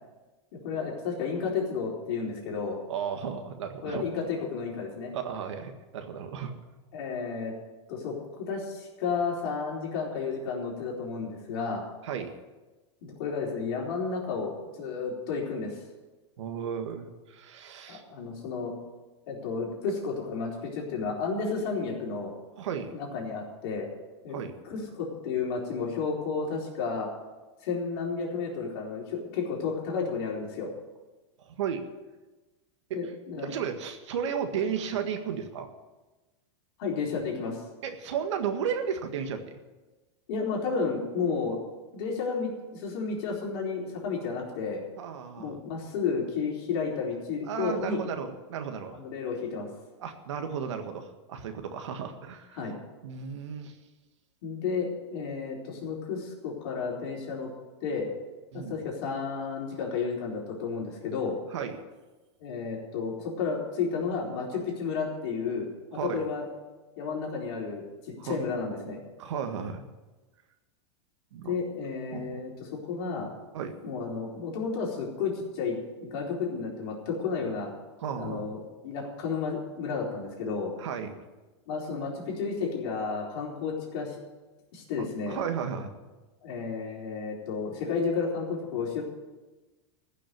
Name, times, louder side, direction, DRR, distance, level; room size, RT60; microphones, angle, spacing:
voice 1, 0.5-2.8 3.8-5.1 6.9-7.5 7.9-11.8 13.0-15.8 17.9-18.7 19.3-22.3 22.9-23.9 24.2-24.4 24.6-27.1 27.6-30.7 32.9-33.5 36.8-37.6 40.3-41.6 41.9-44.8 45.4-48.0 48.9-49.7 52.5-52.8 54.4-57.5 57.8-58.1 58.5-61.4 62.4-65.7 66.0-66.5 67.0-67.8 68.2-69.0 71.4-73.3 73.8-77.7 78.2-80.7 81.7-84.2 84.7-85.4 86.4-89.0, left 5 dB, 55° left, -2 dB, 4.2 m, -32 dB
voice 2, 2.9-4.0 5.1-6.5 12.0-12.3 16.4-18.0 22.6-22.9 24.3-24.6 31.4-31.8 32.9-33.1 33.4-35.7 37.8-39.6 45.0-45.6 47.5-49.0 50.0-52.7 53.0-53.8 58.5-58.8 61.5-61.8 65.9-66.2 68.2-68.4 69.2-69.8 71.3-71.6 72.1-72.4 73.5-73.8 78.0-78.5 80.8-81.1 85.0-85.9, right 7 dB, 85° right, 6 dB, 1.7 m, -34 dB
15.0 x 6.3 x 9.5 m, 1.2 s
supercardioid pair, 155°, 15 cm